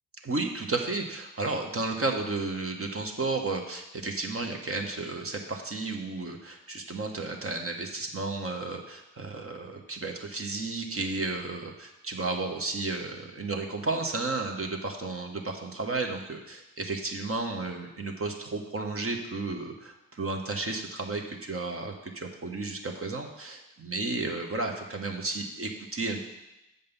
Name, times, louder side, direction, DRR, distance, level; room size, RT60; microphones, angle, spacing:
voice 1, 0.2-26.3, right 3 dB, 30° right, 3 dB, 1.3 m, -33 dB
7.1 x 5.3 x 5.4 m, 0.94 s
hypercardioid pair, 50°, 46 cm